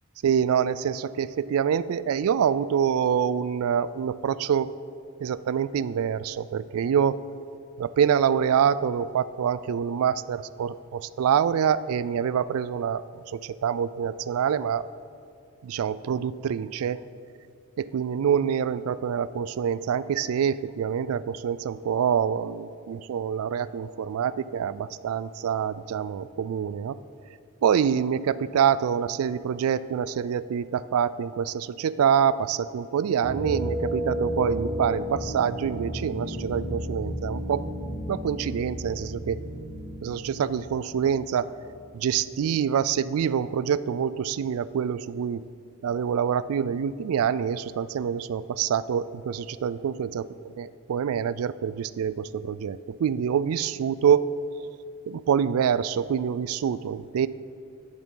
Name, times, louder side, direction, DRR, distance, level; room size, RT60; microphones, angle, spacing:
voice 1, 0.2-4.7 5.2-7.2 7.8-13.0 13.3-14.9 15.6-17.0 17.8-27.0 27.6-37.7 38.1-39.4 40.0-41.5 41.9-45.4 45.8-50.3 50.6-54.3 55.1-57.3, right 8 dB, 75° right, 17 dB, 0.3 m, -26 dB
sound 1, 33.2-41.9, equal, 10° left, 1.7 m, -33 dB
11.5 x 9.6 x 3.9 m, 2.4 s
head